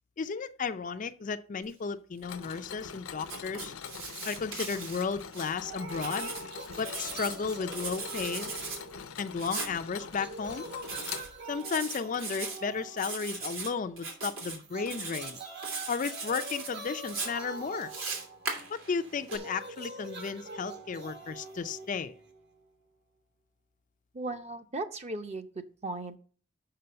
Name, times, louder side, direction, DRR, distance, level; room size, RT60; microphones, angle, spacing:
voice 1, 0.2-3.7 4.2-6.3 6.8-8.5 9.2-10.7 11.5-15.4 15.9-17.9 18.7-22.1, left 5 dB, 35° left, 0.4 m, -34 dB
Mechanisms, 2.2-11.8, left 7 dB, 75° left, 0.6 m, -44 dB
Writing, 3.2-5.5 5.9-7.4 7.7-8.8 9.4-9.7 10.8-11.3 11.6-12.6 13.0-13.7 14.0-14.6 14.9-15.3 15.6-16.7 17.1-19.4, right 3 dB, 75° right, 2.7 m, -38 dB
sound 1, 5.6-9.5 9.8-13.6 14.6-22.6, right 2 dB, 50° right, 1.3 m, -44 dB
voice 2, 24.1-26.2, right 2 dB, 30° right, 0.7 m, -37 dB
6.8 x 5.9 x 6.7 m
head